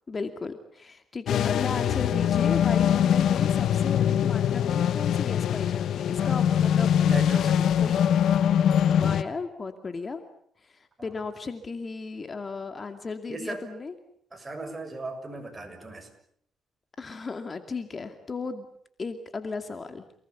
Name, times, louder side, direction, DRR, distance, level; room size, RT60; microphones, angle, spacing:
voice 1, 0.1-7.0 7.8-8.0 8.9-10.2 10.6-13.9 17.0-18.7 19.0-20.0, left 4 dB, 35° left, 8 dB, 2.4 m, -35 dB
sound 1, 1.3-9.2, left 9 dB, 70° left, 1.2 m, -23 dB
voice 2, 7.0-7.6 13.3-13.6 14.3-16.1, right 2 dB, 20° right, 6 dB, 7.0 m, -37 dB
30.0 x 19.5 x 8.4 m, 0.67 s
cardioid pair, 90°, 0 cm